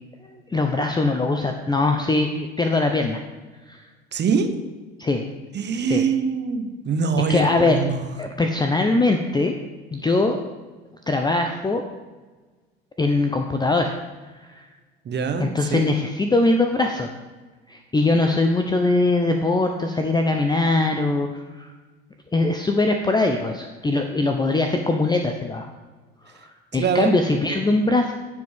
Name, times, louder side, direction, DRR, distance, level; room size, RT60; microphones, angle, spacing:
voice 1, 0.5-3.2 3.7-3.8 5.0-5.3 5.9-6.0 7.3-7.8 8.2-9.5 9.9-10.4 11.1-11.8 13.0-14.0 15.4-17.1 17.7-21.7 22.3-25.7 26.7-28.1, left 2 dB, 15° left, 5 dB, 0.7 m, -21 dB
voice 2, 4.1-4.5 5.5-8.0 15.0-15.9 26.7-27.2 27.5-27.7, right 5 dB, 35° right, 8 dB, 1.2 m, -24 dB
15.0 x 5.1 x 3.6 m, 1.3 s
figure-of-eight pair, 65°, 32 cm